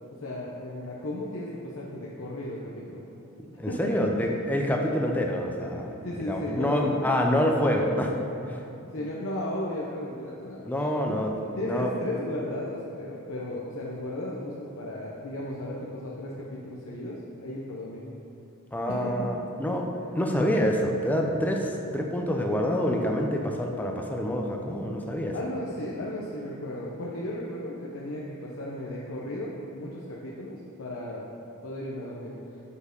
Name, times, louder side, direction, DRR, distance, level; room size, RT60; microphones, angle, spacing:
voice 1, 0.1-3.0 3.7-3.9 6.0-7.1 8.9-11.2 11.6-18.0 18.9-19.3 25.3-31.2 31.6-32.3, left 1 dB, 65° left, -4 dB, 0.7 m, -35 dB
voice 2, 3.6-8.1 8.5-8.6 10.6-11.3 11.6-11.9 18.7-25.3, equal, 5° left, 1 dB, 0.5 m, -27 dB
7.2 x 4.4 x 5.2 m, 3.0 s
head